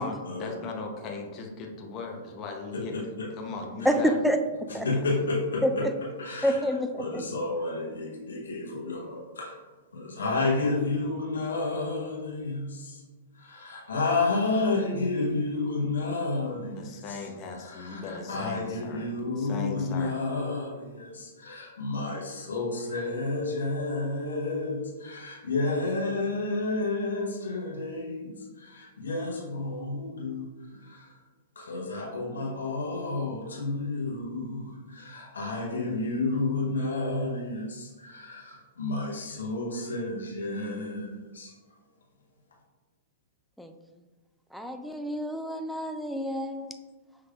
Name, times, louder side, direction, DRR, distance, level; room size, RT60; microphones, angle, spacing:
voice 1, 0.0-3.0 3.4-4.1 4.7-5.0 16.8-19.1 19.4-20.2, left 4 dB, 35° left, 1 dB, 0.7 m, -38 dB
voice 2, 2.7-3.3 3.8-3.9 4.8-5.8 6.2-6.7 7.0-9.6 9.9-13.0 13.3-17.2 17.5-31.2 31.5-41.5, left 3 dB, 85° left, -3 dB, 1.0 m, -31 dB
voice 3, 3.8-4.4 4.7-4.9 5.6-5.9 6.4-7.2 43.6-43.7 44.5-46.7, equal, ahead, 6 dB, 0.4 m, -28 dB
5.9 x 3.3 x 2.4 m, 1.3 s
hypercardioid pair, 120°, 0 cm